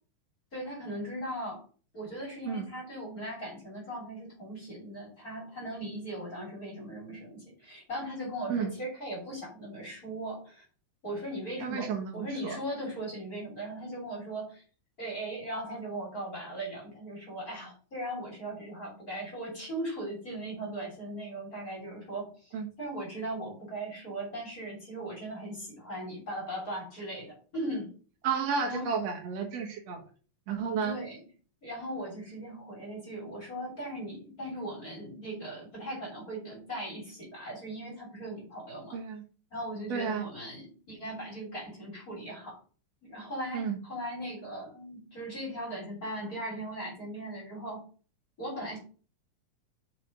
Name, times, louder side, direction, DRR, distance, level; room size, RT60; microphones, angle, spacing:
voice 1, 0.5-1.6 1.9-10.6 11.0-14.6 15.0-27.9 28.6-28.9 30.8-31.2 31.6-39.0 39.5-42.6 43.0-47.9 48.4-48.8, right 1 dB, 25° left, -3 dB, 3.6 m, -38 dB
voice 2, 11.6-12.6 22.5-22.7 28.2-30.0 30.5-31.0 38.9-39.2 39.9-40.3 43.5-43.8, right 6 dB, 60° right, 2 dB, 2.3 m, -32 dB
6.5 x 5.8 x 5.2 m, 0.39 s
omnidirectional pair, 3.9 m